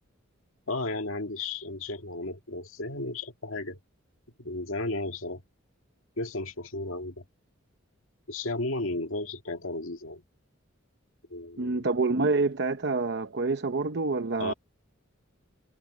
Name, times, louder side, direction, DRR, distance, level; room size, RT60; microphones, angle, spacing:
voice 1, 0.7-3.8 4.4-5.4 6.2-7.2 8.3-10.2 11.3-11.9 14.4-14.5, left 2 dB, 85° left, 2.0 m, -34 dB
voice 2, 11.6-14.5, right 3 dB, 55° right, 0.8 m, -27 dB
head